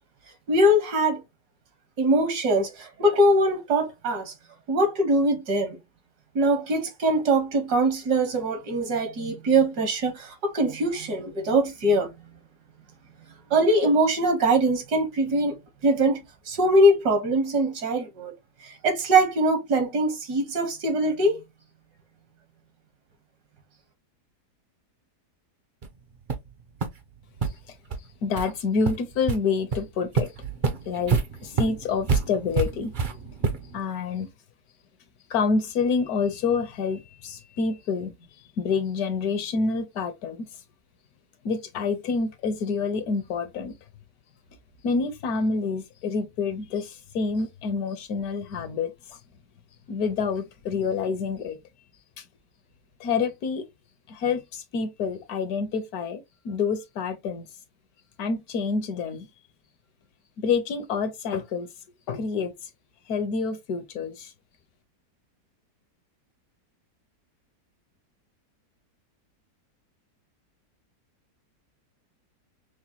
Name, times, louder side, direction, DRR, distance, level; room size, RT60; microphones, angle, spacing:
voice 1, 0.5-1.2 2.0-4.3 4.7-5.8 6.3-12.1 13.5-15.6 15.8-16.2 16.5-18.3 18.8-21.4, right 1 dB, 75° right, 1.7 m, -22 dB
sound 1, 25.8-25.9 26.3-26.5 26.8-26.9 27.4-27.5 27.9-28.0 28.4-28.5 28.9-29.4 29.7-29.8 30.2-33.8, right 4 dB, 55° right, 0.5 m, -27 dB
voice 2, 28.2-30.3 30.9-33.2 33.7-34.3 35.3-38.1 38.6-40.5 41.4-43.7 44.8-49.2 49.9-51.6 52.2-52.3 53.0-53.6 54.1-57.5 58.2-59.3 60.4-61.7 62.1-62.5 63.1-64.3, left 5 dB, 70° left, 1.2 m, -27 dB
6.0 x 2.1 x 2.9 m
omnidirectional pair, 1.8 m